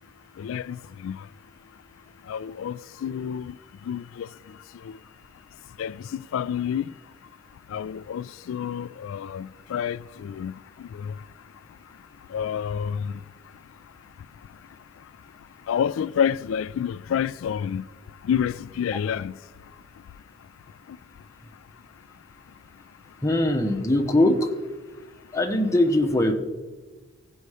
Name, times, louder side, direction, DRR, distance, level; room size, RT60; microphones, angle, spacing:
voice 1, 0.4-1.3 2.3-3.6 3.8-5.0 5.8-6.9 7.7-11.2 12.3-13.2 15.7-17.9 18.2-19.3 20.9-21.0, left 8 dB, 85° left, 0.3 m, -29 dB
voice 2, 23.2-24.5 25.3-26.3, left 1 dB, 15° left, 0.8 m, -21 dB
16.0 x 5.4 x 4.8 m
head